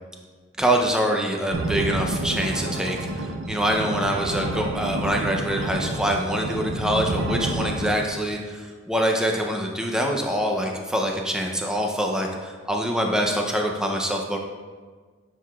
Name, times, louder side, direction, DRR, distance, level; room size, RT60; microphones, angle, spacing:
voice 1, 0.6-14.4, equal, 5° right, 1 dB, 0.5 m, -25 dB
sound 1, 1.5-7.9, right 2 dB, 85° right, 0.5 m, -29 dB
9.1 x 4.8 x 2.3 m, 1.5 s
head